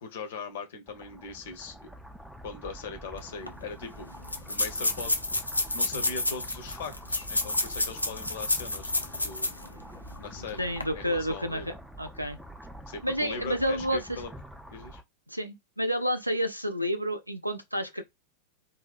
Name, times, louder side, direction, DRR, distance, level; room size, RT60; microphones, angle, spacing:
voice 1, 0.0-1.9 2.4-4.1 4.5-5.2 5.7-9.5 10.2-10.7 10.9-11.8 12.9-14.3 14.7-15.0, left 4 dB, 55° left, 0.7 m, -40 dB
sound 1, 0.9-15.0, right 1 dB, 5° right, 0.3 m, -46 dB
sound 2, 3.2-3.3 3.5-3.6 4.2-9.7 10.1-10.2 10.7-10.8, left 2 dB, 85° left, 0.3 m, -29 dB
voice 2, 10.6-12.4 13.0-14.2 15.3-18.0, equal, 90° right, 0.4 m, -30 dB
2.6 x 2.0 x 2.4 m
figure-of-eight pair, 90°, 0 cm